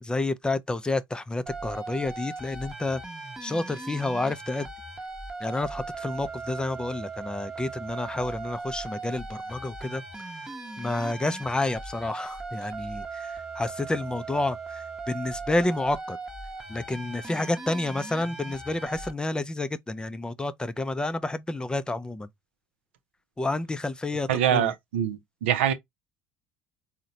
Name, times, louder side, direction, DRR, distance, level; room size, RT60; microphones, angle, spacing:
voice 1, 0.0-3.0 3.4-4.7 5.4-10.3 10.8-16.2 16.7-22.3 23.4-24.7, left 2 dB, 15° left, 0.4 m, -30 dB
sound 1, 1.5-19.1, right 3 dB, 10° right, 0.8 m, -38 dB
voice 2, 24.3-25.7, right 10 dB, 90° right, 0.5 m, -24 dB
3.8 x 2.1 x 2.6 m
hypercardioid pair, 75°, 6 cm